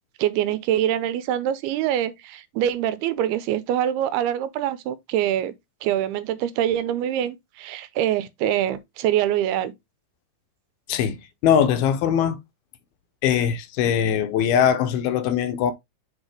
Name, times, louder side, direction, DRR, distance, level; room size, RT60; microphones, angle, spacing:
voice 1, 0.2-5.5 5.8-9.7, right 11 dB, 85° right, 2.7 m, -24 dB
voice 2, 10.9-12.4 13.2-15.7, left 8 dB, 80° left, 2.6 m, -21 dB
8.0 x 4.1 x 3.3 m
omnidirectional pair, 4.6 m